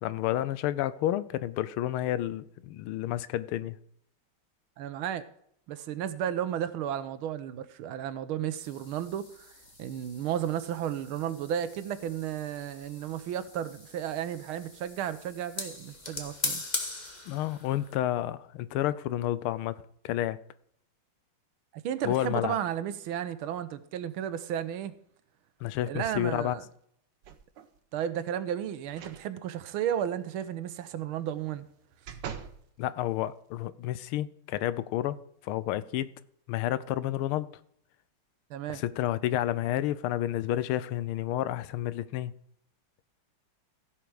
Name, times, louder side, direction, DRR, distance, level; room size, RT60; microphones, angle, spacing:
voice 1, 0.0-3.8 17.3-20.4 22.0-22.6 25.6-26.6 32.8-36.1 36.5-37.5 38.7-42.3, left 13 dB, 90° left, 1.5 m, -30 dB
voice 2, 4.8-5.2 5.7-9.3 9.8-16.6 21.8-24.9 25.9-26.6 27.9-31.7 38.5-38.8, right 10 dB, 80° right, 1.6 m, -33 dB
sound 1, 8.6-17.9, left 2 dB, 25° left, 1.4 m, -41 dB
sound 2, 27.2-27.8 28.9-29.2 29.7-29.8 31.4-32.6 33.2-33.3, right 8 dB, 65° right, 1.5 m, -43 dB
15.5 x 5.9 x 4.9 m
omnidirectional pair, 2.3 m